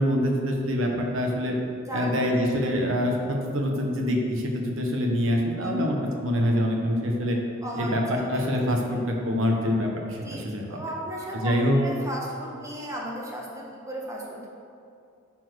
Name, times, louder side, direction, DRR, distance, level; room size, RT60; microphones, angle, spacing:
voice 1, 0.0-1.5 1.9-3.1 3.4-7.4 7.7-10.6 11.4-11.8, equal, 65° right, 1 dB, 1.2 m, -25 dB
voice 2, 1.9-2.6 5.5-6.1 7.6-9.0 10.2-14.5, equal, 15° right, -3 dB, 1.4 m, -36 dB
10.5 x 4.5 x 6.4 m, 2.5 s
head